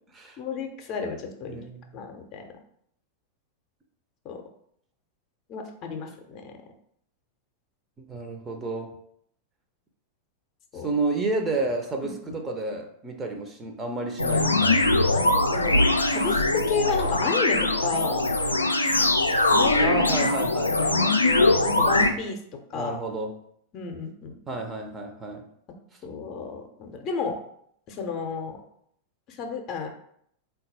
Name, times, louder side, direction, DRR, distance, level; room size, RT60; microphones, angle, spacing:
voice 1, 0.4-1.6 1.9-2.5 4.2-4.4 5.5-6.6 10.7-10.9 12.0-12.4 15.2-15.8 16.1-18.3 19.5-20.0 20.4-21.0 21.2-22.9 23.7-24.3 26.0-27.4 27.9-28.6 29.3-29.9, left 5 dB, 35° left, 4 dB, 0.6 m, -32 dB
voice 2, 1.5-1.8 8.1-8.9 10.8-14.8 19.8-21.2 22.7-23.4 24.5-25.4, right 2 dB, 20° right, 3 dB, 0.6 m, -30 dB
sound 1, 14.2-22.1, left 2 dB, 80° left, 0.3 m, -22 dB
3.8 x 2.3 x 4.0 m, 0.68 s
figure-of-eight pair, 90°, 0 cm